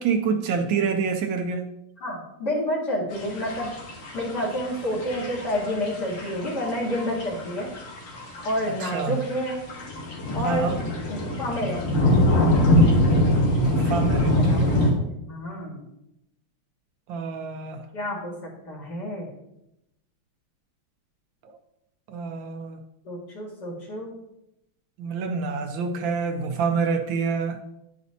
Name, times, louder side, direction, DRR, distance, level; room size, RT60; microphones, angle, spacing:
voice 1, 0.0-1.7 8.8-9.2 10.4-10.8 13.5-14.9 17.1-17.8 21.4-21.5 22.1-22.8 25.0-27.6, right 5 dB, 75° right, 5 dB, 1.3 m, -27 dB
voice 2, 2.0-3.7 4.1-7.7 8.4-9.6 10.3-10.7 11.1-12.2 14.2-15.8 17.9-18.4 18.7-19.3 23.0-24.2, equal, 55° left, -4 dB, 2.2 m, -29 dB
sound 1, 3.1-14.9, left 1 dB, 85° left, 2.2 m, -24 dB
10.5 x 5.0 x 2.7 m, 0.84 s
omnidirectional pair, 2.3 m